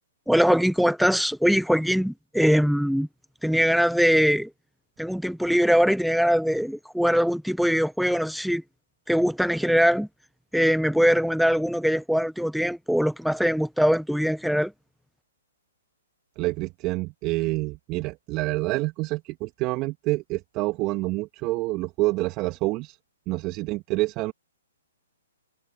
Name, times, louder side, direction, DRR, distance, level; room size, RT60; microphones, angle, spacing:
voice 1, 0.3-3.1 3.4-4.5 5.0-8.6 9.1-10.1 10.5-14.7, equal, ahead, 1.0 m, -22 dB
voice 2, 16.4-23.0 23.3-24.3, right 21 dB, 30° right, 2.1 m, -27 dB
hypercardioid pair, 130°, 0 cm